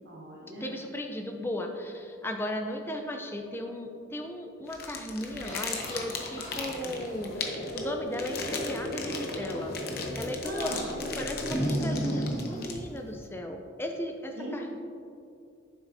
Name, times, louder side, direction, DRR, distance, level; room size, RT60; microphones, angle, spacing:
voice 1, 0.0-0.7 10.4-11.0 14.4-14.8, right 1 dB, 60° right, -4 dB, 1.0 m, -38 dB
voice 2, 0.6-14.8, left 1 dB, 10° left, 3 dB, 0.5 m, -36 dB
sound 1, 3.8-12.7, left 1 dB, 70° left, 1.4 m, -39 dB
sound 2, 4.7-13.2, left 6 dB, 50° left, 0.8 m, -39 dB
sound 3, 5.4-7.9 9.4-10.3 10.7-12.7, equal, 35° left, 1.8 m, -34 dB
9.3 x 7.3 x 2.7 m, 2.5 s
head